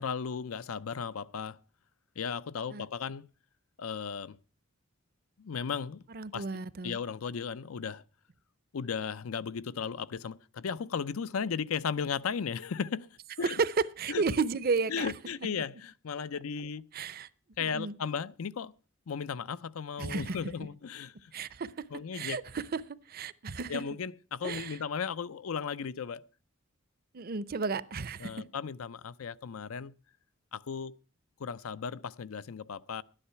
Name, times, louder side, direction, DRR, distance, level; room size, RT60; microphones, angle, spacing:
voice 1, 0.0-1.6 2.2-3.3 3.8-4.4 5.4-6.0 6.3-6.4 6.8-8.0 8.7-13.1 13.4-13.6 14.1-14.2 14.9-16.8 17.6-18.7 19.1-21.3 21.9-22.4 23.7-26.3 28.2-29.9 30.5-30.9 31.4-33.0, left 6 dB, 90° left, 0.5 m, -35 dB
voice 2, 6.1-7.0 13.4-15.1 16.9-17.3 17.6-17.9 20.0-20.4 21.3-21.7 22.1-22.8 23.1-23.8 24.4-24.8 27.1-28.3, right 4 dB, 45° right, 0.6 m, -32 dB
12.0 x 9.9 x 5.7 m
head